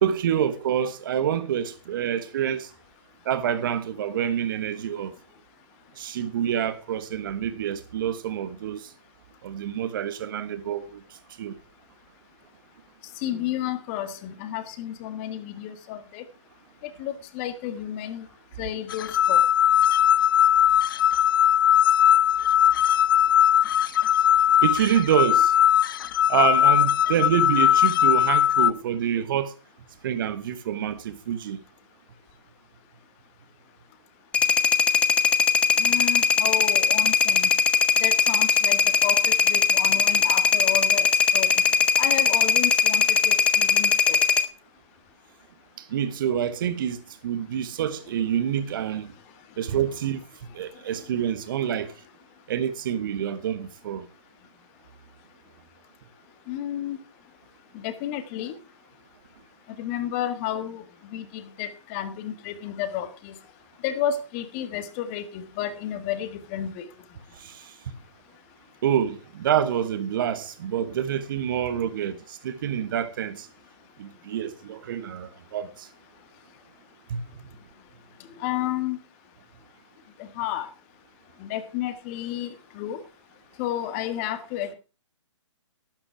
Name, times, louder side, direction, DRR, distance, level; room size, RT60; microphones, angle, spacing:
voice 1, 0.0-2.7 3.2-5.1 6.0-8.9 9.4-11.5 24.6-25.6 26.3-29.5 30.0-31.6 45.8-49.1 49.6-50.3 50.5-51.9 52.5-54.1 67.3-67.7 68.8-73.5 74.0-75.9 77.1-77.4, right 9 dB, 45° right, 1.3 m, -27 dB
voice 2, 13.2-16.2 17.0-18.3 18.6-19.4 35.8-37.5 38.0-41.1 41.3-41.6 42.0-44.2 56.5-57.0 57.7-58.5 59.8-63.4 63.8-66.9 78.4-79.0 80.2-80.7 81.4-83.0 83.6-84.7, left 11 dB, 25° left, 1.5 m, -31 dB
sound 1, 18.9-28.7, left 10 dB, 45° left, 0.6 m, -19 dB
sound 2, 34.3-44.5, left 6 dB, 10° left, 0.7 m, -20 dB
12.0 x 8.8 x 4.6 m
figure-of-eight pair, 140°, 16 cm